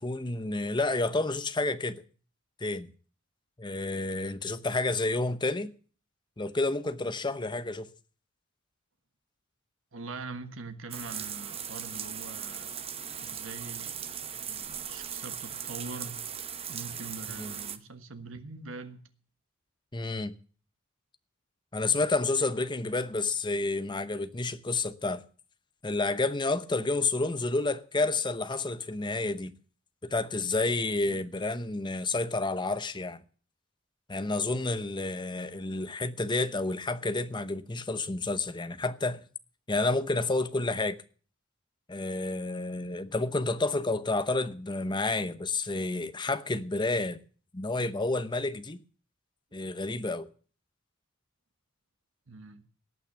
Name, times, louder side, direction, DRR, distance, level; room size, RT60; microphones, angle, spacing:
voice 1, 0.0-2.0 2.6-2.9 3.6-5.7 6.4-7.9 17.4-17.5 19.9-20.3 21.7-25.2 25.8-29.5 30.0-33.2 34.1-39.2 39.7-41.0 41.9-47.2 47.5-48.8 49.5-50.3, left 3 dB, 20° left, 0.8 m, -30 dB
voice 2, 9.9-12.7 13.2-14.1 14.5-16.3 16.7-19.1 31.1-31.3 52.3-52.6, right 3 dB, 70° right, 1.4 m, -43 dB
sound 1, 10.9-17.8, right 8 dB, 30° right, 0.9 m, -38 dB
18.0 x 6.1 x 8.1 m
head